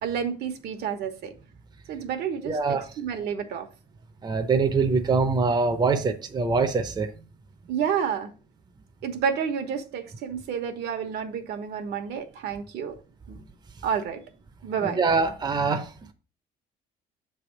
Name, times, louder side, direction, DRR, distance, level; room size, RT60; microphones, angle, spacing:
voice 1, 0.0-1.3 1.9-3.7 7.7-8.3 9.0-12.9 13.3-13.4 13.8-14.2 14.6-15.0, right 7 dB, 75° right, 1.2 m, -30 dB
voice 2, 2.4-2.9 4.2-7.1 14.8-16.1, right 4 dB, 25° right, 0.7 m, -24 dB
6.7 x 3.4 x 5.8 m
cardioid pair, 110°, 17 cm